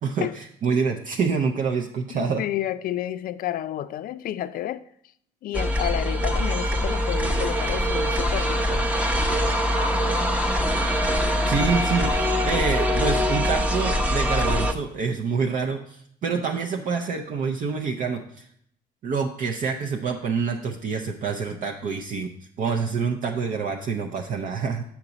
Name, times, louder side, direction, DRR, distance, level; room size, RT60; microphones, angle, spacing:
voice 1, 0.0-2.4 11.5-18.4 19.0-22.3 22.6-24.8, right 5 dB, 50° right, 0.6 m, -27 dB
voice 2, 2.1-4.8 5.4-8.9, left 12 dB, 55° left, 0.4 m, -30 dB
sound 1, 5.5-14.7, equal, 10° right, 0.7 m, -23 dB
7.3 x 5.9 x 3.9 m
cardioid pair, 110°, 17 cm